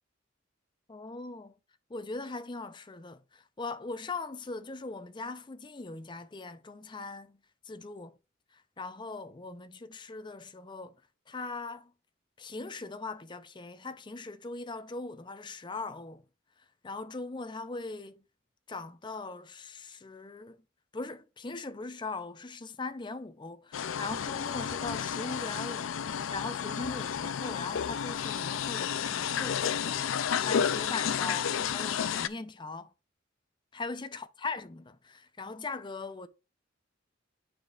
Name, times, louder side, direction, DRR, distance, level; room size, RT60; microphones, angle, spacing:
voice 1, 0.9-1.5 1.9-7.4 7.7-8.1 8.8-11.0 11.3-11.9 12.4-16.2 16.8-18.2 18.7-20.6 20.9-32.9 33.7-36.3, left 3 dB, 25° left, 0.5 m, -40 dB
sound 1, 23.7-32.3, left 8 dB, 80° left, 0.4 m, -31 dB
8.8 x 5.0 x 2.4 m
head